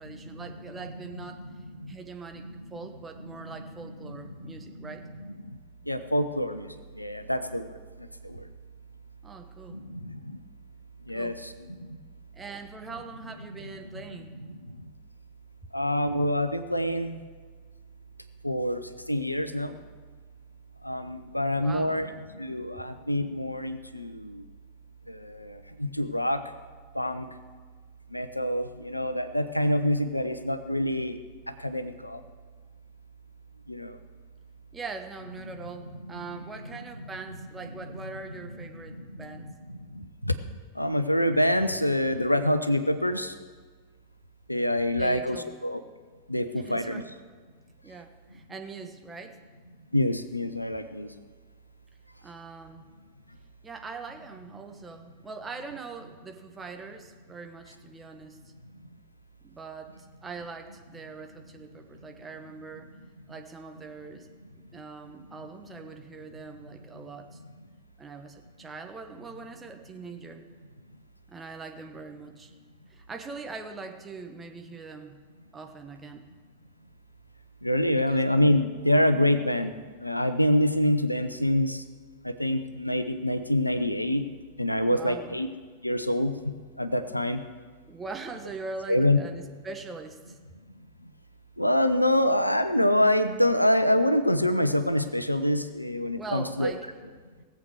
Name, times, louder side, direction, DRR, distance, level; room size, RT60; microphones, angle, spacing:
voice 1, 0.0-1.5 1.9-5.1 9.2-9.8 11.1-11.4 12.3-14.3 21.3-22.1 34.7-39.5 45.0-45.6 46.5-47.1 47.8-49.4 52.2-52.9 53.6-58.4 59.4-62.9 63.3-64.3 64.7-67.4 68.0-70.5 71.3-72.5 72.9-75.2 75.5-76.3 78.1-78.2 84.8-85.4 87.9-90.4 96.1-96.8, right 4 dB, 15° right, 4 dB, 1.3 m, -42 dB
voice 2, 4.4-4.7 5.9-6.7 7.0-7.8 8.2-8.4 9.7-10.4 11.1-11.9 14.5-14.6 15.7-17.2 18.4-18.8 19.1-19.8 20.8-22.1 22.3-24.4 25.1-26.4 26.9-27.3 28.1-31.2 31.6-32.2 33.7-34.0 38.9-40.3 40.8-43.3 44.5-45.8 46.3-47.0 49.9-51.1 77.6-79.7 80.0-81.8 82.2-84.3 84.6-85.5 85.8-87.4 88.9-89.2 91.6-96.7, left 1 dB, 90° left, 11 dB, 0.7 m, -26 dB
18.5 x 7.8 x 6.4 m, 1.5 s
figure-of-eight pair, 90°, 0 cm